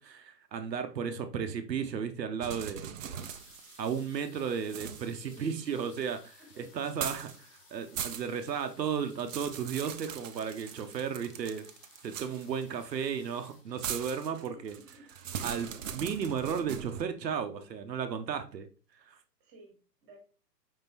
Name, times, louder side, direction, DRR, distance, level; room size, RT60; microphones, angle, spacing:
voice 1, 0.0-2.9 3.8-11.7 12.0-14.8 15.4-18.7 18.9-19.2, right 7 dB, 80° right, 8 dB, 0.8 m, -34 dB
sound 1, 2.4-4.2 4.6-6.1 6.8-7.4 7.7-8.5 8.9-12.6 13.8-17.0, right 8 dB, 55° right, 0.5 m, -40 dB
sound 2, 3.2-15.7 16.5-16.6 16.8-17.2 17.5-18.1 18.6-18.7 18.9-19.0, left 3 dB, 20° left, 0.7 m, -59 dB
voice 2, 6.4-6.8 14.3-15.1 19.4-20.2, right 1 dB, 20° right, 2 dB, 1.4 m, -55 dB
5.0 x 3.7 x 2.8 m, 0.36 s
hypercardioid pair, 130°, 49 cm